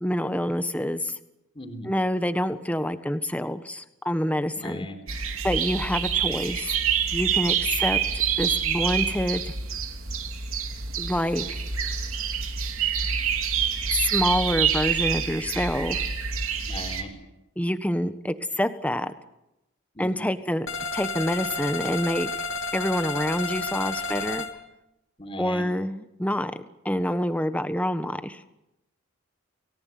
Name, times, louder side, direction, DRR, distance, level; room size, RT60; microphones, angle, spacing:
voice 1, 0.0-1.2 1.8-4.9 5.4-6.8 7.1-8.0 8.4-9.4 11.0-11.6 14.0-16.0 17.6-19.1 20.0-20.7 20.9-22.3 22.7-24.5 25.4-26.5 26.8-28.4, equal, 5° left, 10 dB, 1.3 m, -27 dB
voice 2, 1.6-1.9 4.5-5.0 16.7-17.1 20.0-20.1 25.2-25.7, left 1 dB, 25° left, 6 dB, 3.9 m, -37 dB
sound 1, 5.1-17.0, right 7 dB, 75° right, 3.1 m, -27 dB
sound 2, 20.7-24.5, left 3 dB, 60° left, 3.3 m, -31 dB
30.0 x 19.0 x 9.4 m, 0.90 s
head